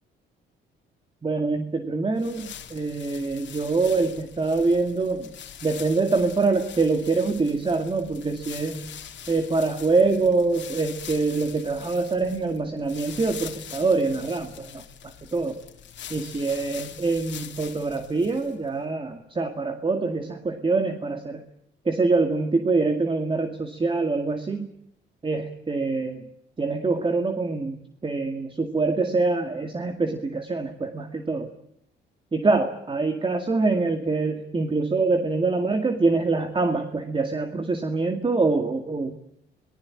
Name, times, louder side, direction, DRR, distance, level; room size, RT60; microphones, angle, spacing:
voice 1, 1.2-5.3 5.6-8.9 9.3-14.8 15.3-15.6 16.1-21.4 21.9-24.7 25.2-26.2 26.6-27.8 28.0-31.5 32.3-39.2, right 3 dB, 25° right, 7 dB, 2.2 m, -25 dB
sound 1, 2.2-18.7, left 9 dB, 65° left, 2.7 m, -43 dB
23.5 x 19.5 x 8.7 m, 0.72 s
cardioid pair, 90°, 20 cm